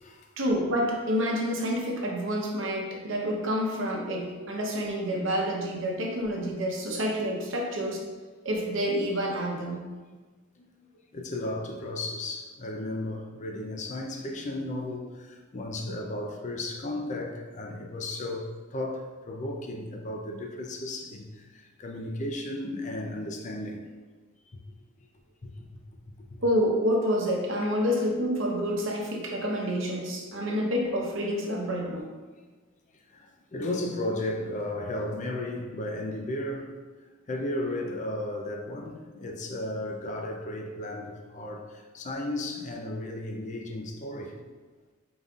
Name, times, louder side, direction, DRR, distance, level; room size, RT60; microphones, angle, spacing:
voice 1, 0.4-8.0 8.4-9.8 26.4-32.0, equal, 65° right, -1 dB, 0.8 m, -28 dB
voice 2, 5.1-5.4 11.1-15.1 15.5-21.3 21.8-23.8 25.4-25.5 33.5-36.7 37.3-41.7 41.9-44.3, left 1 dB, 35° left, 2 dB, 0.4 m, -34 dB
5.1 x 3.9 x 2.4 m, 1.4 s
head